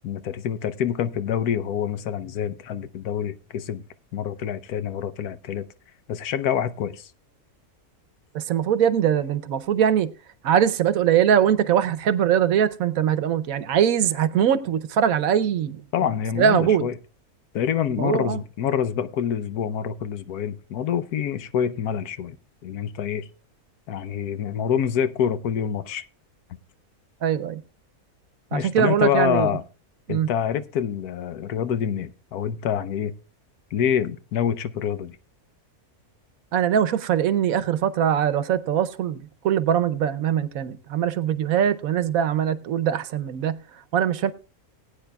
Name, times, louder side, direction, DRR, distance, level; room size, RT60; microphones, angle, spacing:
voice 1, 0.0-3.8 4.1-5.6 6.1-7.1 15.9-16.9 17.5-22.4 22.6-23.3 23.9-26.0 28.5-29.6 30.1-33.1 33.7-35.2, left 8 dB, 85° left, 1.2 m, -26 dB
voice 2, 8.3-10.1 10.4-15.8 16.4-16.9 18.0-18.4 27.2-27.6 28.5-29.5 30.1-30.3 36.5-43.6 43.9-44.3, right 9 dB, 70° right, 1.1 m, -22 dB
19.5 x 9.0 x 2.3 m
omnidirectional pair, 1.6 m